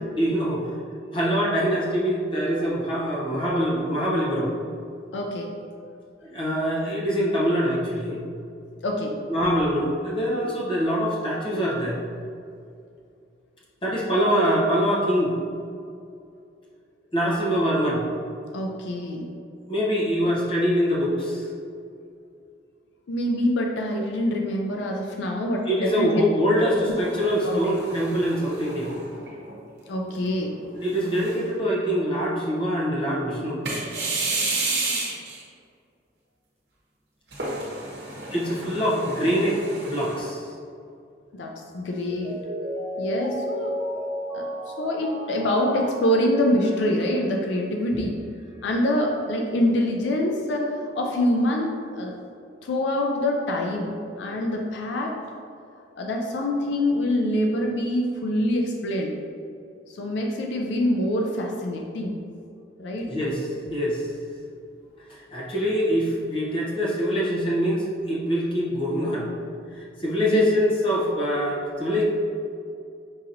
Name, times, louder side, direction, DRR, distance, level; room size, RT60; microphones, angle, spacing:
voice 1, 0.1-0.7 1.1-4.5 6.2-8.2 9.3-12.0 13.8-15.3 17.1-18.0 19.7-21.5 25.7-28.9 30.7-33.6 38.3-40.5 47.9-48.0 63.1-63.4 63.7-64.1 65.1-69.3 69.7-72.0, equal, 30° left, -5 dB, 0.7 m, -24 dB
voice 2, 5.1-5.5 8.8-9.2 18.5-19.3 23.1-26.2 26.6-26.9 27.4-27.8 29.9-30.6 33.9-34.3 39.2-39.4 41.3-42.4 43.0-43.7 44.3-48.2 48.6-52.2 52.6-55.2 56.0-59.1 59.9-62.2 62.8-63.1 70.2-70.4, left 1 dB, 75° left, 1 dB, 0.4 m, -25 dB
sound 1, 27.0-29.5 30.1-30.2 30.9-31.6 33.7-35.4 37.3-40.2, right 3 dB, 65° right, 0.9 m, -31 dB
Mallet percussion, 41.9-47.4 47.8-47.9, equal, 20° right, 0.7 m, -34 dB
5.5 x 2.8 x 2.5 m, 2.4 s
head